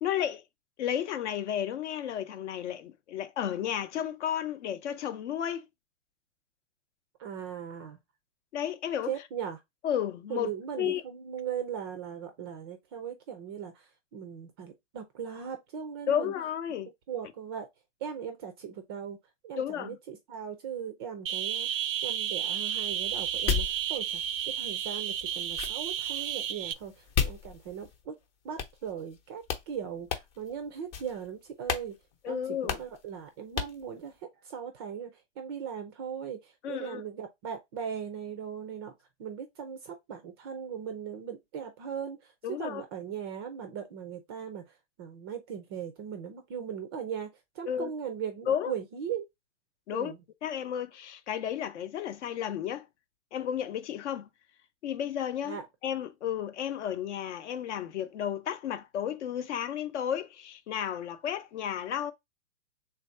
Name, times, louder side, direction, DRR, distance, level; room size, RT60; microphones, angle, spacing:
voice 1, 0.0-0.4 0.8-5.6 8.5-9.1 9.8-10.5 10.8-11.0 16.1-16.9 19.6-20.0 32.2-32.8 36.6-37.0 42.4-42.8 47.7-47.9 48.5-48.7 49.9-50.1 50.4-52.9 53.3-54.3 54.8-62.1, left 9 dB, 65° left, 0.7 m, -32 dB
voice 2, 7.2-8.0 9.1-9.6 10.3-16.3 17.1-17.7 18.0-19.2 19.4-28.2 28.4-32.0 32.3-38.9 39.2-42.3 42.6-47.3 47.5-49.3 49.9-50.2 55.4-55.6, right 8 dB, 20° right, 0.3 m, -39 dB
sound 1, 21.3-26.7, right 10 dB, 85° right, 0.5 m, -32 dB
sound 2, 22.7-28.1 28.6-29.2 29.4-29.7 30.1-30.5 30.9-31.3 31.7-31.9 32.1-32.2 32.7-33.0 33.6-33.8, left 7 dB, 30° left, 0.8 m, -35 dB
3.4 x 2.6 x 4.3 m
hypercardioid pair, 140°, 38 cm